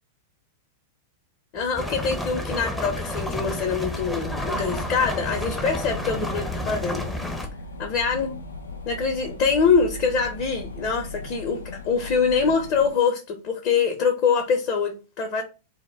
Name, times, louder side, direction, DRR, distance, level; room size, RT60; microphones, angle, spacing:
voice 1, 1.5-7.1 7.8-8.4 8.9-15.4, left 5 dB, 45° left, 0.6 m, -24 dB
sound 1, 1.5-11.1, right 12 dB, 50° right, 0.8 m, -43 dB
sound 2, 1.8-7.5, left 1 dB, 5° left, 0.5 m, -30 dB
sound 3, 3.6-13.0, left 4 dB, 90° left, 0.4 m, -39 dB
2.1 x 2.0 x 3.3 m
hypercardioid pair, 100°, 0 cm